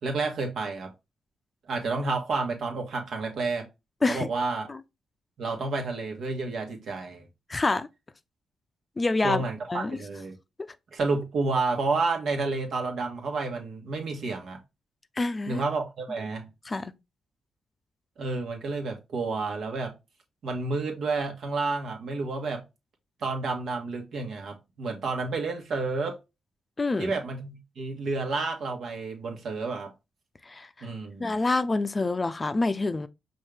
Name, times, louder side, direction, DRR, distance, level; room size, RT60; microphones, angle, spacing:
voice 1, 0.0-0.9 1.7-3.7 4.1-4.7 5.4-7.3 9.2-10.3 10.9-14.6 15.5-16.5 18.2-19.9 20.4-22.6 23.2-26.2 27.0-29.9 30.8-31.3, right 3 dB, 65° right, 1.3 m, -30 dB
voice 2, 7.5-7.9 9.0-9.4 9.7-10.0 15.2-15.6 16.7-16.9 26.8-27.1 30.5-30.9 31.2-33.1, left 3 dB, 30° left, 0.5 m, -27 dB
5.5 x 2.7 x 3.4 m
supercardioid pair, 50°, 0 cm